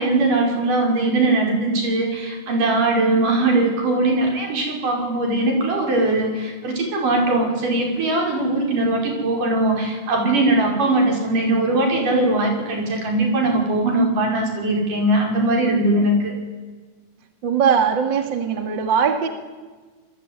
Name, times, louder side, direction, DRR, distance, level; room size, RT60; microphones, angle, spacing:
voice 1, 0.0-16.3, right 2 dB, 80° right, 2 dB, 7.3 m, -20 dB
voice 2, 17.4-19.3, right 7 dB, 40° right, 7 dB, 2.6 m, -20 dB
28.5 x 21.0 x 9.8 m, 1.4 s
omnidirectional pair, 3.7 m